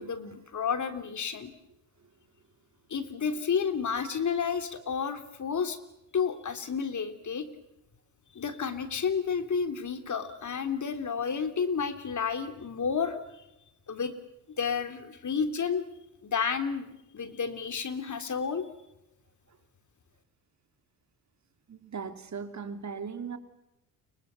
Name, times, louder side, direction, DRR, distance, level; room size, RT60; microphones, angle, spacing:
voice 1, 0.0-1.5 2.9-5.8 6.1-7.5 8.3-13.2 13.9-14.1 14.6-15.8 16.2-16.9 17.1-18.7, left 6 dB, 45° left, 9 dB, 3.4 m, -31 dB
voice 2, 21.7-23.4, right 6 dB, 40° right, 8 dB, 3.2 m, -38 dB
29.5 x 24.0 x 7.0 m, 0.87 s
hypercardioid pair, 60°, 42 cm